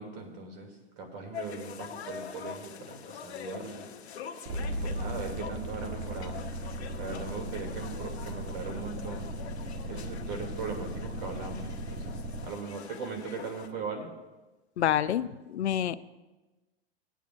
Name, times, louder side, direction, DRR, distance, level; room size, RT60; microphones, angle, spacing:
voice 1, 0.0-3.9 4.6-6.4 6.9-9.3 9.9-14.1, right 4 dB, 60° right, 3 dB, 2.9 m, -39 dB
sound 1, 1.3-13.7, left 7 dB, 75° left, 1.2 m, -44 dB
sound 2, 4.5-12.5, right 1 dB, 40° right, 1.5 m, -37 dB
voice 2, 14.8-16.0, left 10 dB, 90° left, 16 dB, 0.5 m, -27 dB
19.5 x 9.1 x 2.6 m, 1.1 s
hypercardioid pair, 110°, 33 cm